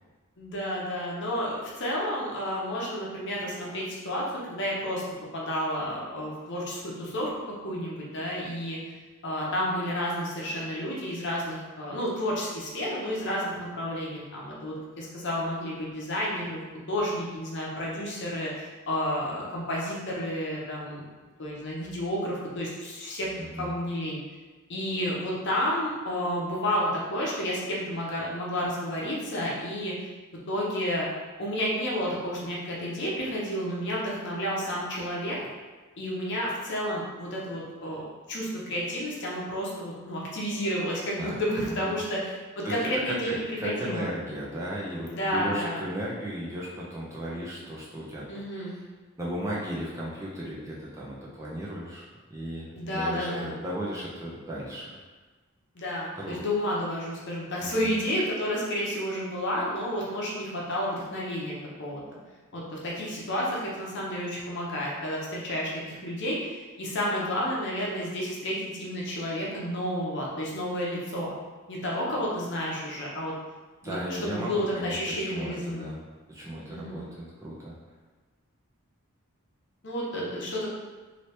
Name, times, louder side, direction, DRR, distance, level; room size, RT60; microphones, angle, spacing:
voice 1, 0.4-5.0 5.3-8.8 9.2-21.1 21.4-23.3 23.6-24.2 24.7-29.9 30.5-31.1 31.4-35.4 36.0-44.1 45.1-45.8 48.3-48.7 52.7-53.5 55.7-62.0 62.5-71.3 71.7-73.3 73.8-74.0 74.2-75.9 76.7-77.1 79.8-80.7, equal, 50° left, -4 dB, 0.7 m, -31 dB
voice 2, 23.4-23.8 41.2-41.4 41.7-42.0 42.6-48.8 49.2-54.9 56.1-56.4 57.6-57.9 73.8-76.0 76.3-77.7, right 1 dB, 15° right, -6 dB, 0.5 m, -35 dB
2.9 x 2.8 x 3.2 m, 1.3 s
head